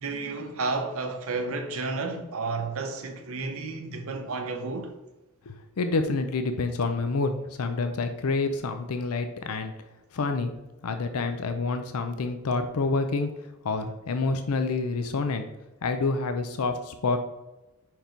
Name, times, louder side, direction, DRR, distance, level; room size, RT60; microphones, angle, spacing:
voice 1, 0.0-4.9, right 3 dB, 65° right, 0.7 m, -31 dB
voice 2, 5.5-9.7 10.1-10.5 10.8-13.3 13.6-15.5 15.8-17.2, left 3 dB, 80° left, 0.5 m, -28 dB
5.2 x 4.6 x 4.4 m
head